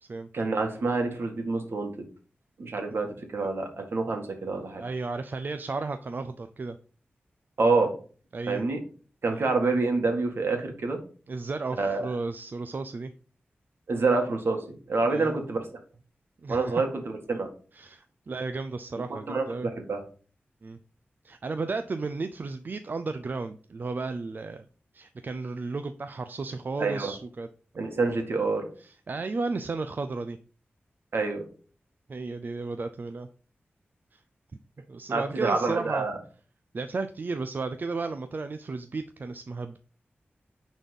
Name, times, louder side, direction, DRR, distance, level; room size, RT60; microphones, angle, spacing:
voice 1, 0.3-2.1 2.6-4.8 7.6-7.9 8.5-8.8 9.2-11.0 11.8-12.1 13.9-15.6 16.5-17.5 19.3-20.0 26.8-27.1 27.8-28.7 31.1-31.5 35.1-36.2, right 3 dB, 70° right, 4 dB, 2.0 m, -27 dB
voice 2, 4.8-6.8 8.3-8.6 9.3-9.4 11.3-13.1 15.1-15.5 16.4-16.8 17.7-19.7 20.6-20.8 21.2-24.7 24.9-27.5 28.0-28.1 28.8-30.4 32.1-33.3 34.1-34.2 34.9-36.1 36.7-39.8, right 3 dB, 50° right, 9 dB, 0.5 m, -34 dB
9.9 x 4.2 x 5.3 m, 0.40 s
wide cardioid pair, 105°, 4 cm